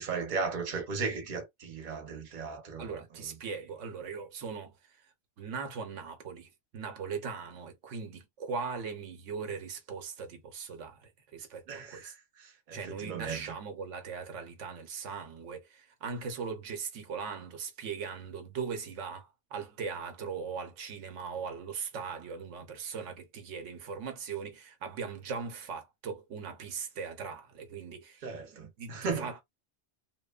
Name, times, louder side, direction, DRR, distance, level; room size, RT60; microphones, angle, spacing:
voice 1, 0.0-2.9 11.7-13.5 28.2-29.3, right 5 dB, 45° right, 0.8 m, -36 dB
voice 2, 2.8-12.1 12.7-28.2 28.5-29.4, right 5 dB, 90° right, 1.1 m, -39 dB
2.9 x 2.1 x 2.2 m
omnidirectional pair, 1.2 m